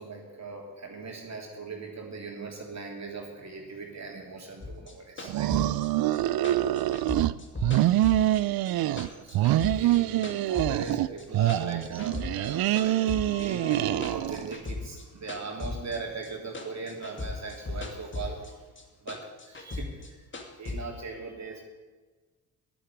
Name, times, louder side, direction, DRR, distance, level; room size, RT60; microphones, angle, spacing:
voice 1, 0.0-5.5 5.8-5.9 8.7-8.9 9.2-18.7 19.0-20.2 20.6-21.6, right 3 dB, 40° right, 0 dB, 3.3 m, -39 dB
sound 1, 4.6-8.7 9.0-10.9 11.2-12.5 12.8-16.3 16.5-18.5 18.8-20.8, left 3 dB, 30° left, 2.5 m, -37 dB
sound 2, 5.3-7.3 7.6-9.1 9.3-11.1 11.3-14.5, right 14 dB, 60° right, 0.6 m, -25 dB
10.0 x 8.5 x 9.9 m, 1.3 s
supercardioid pair, 55°, 41 cm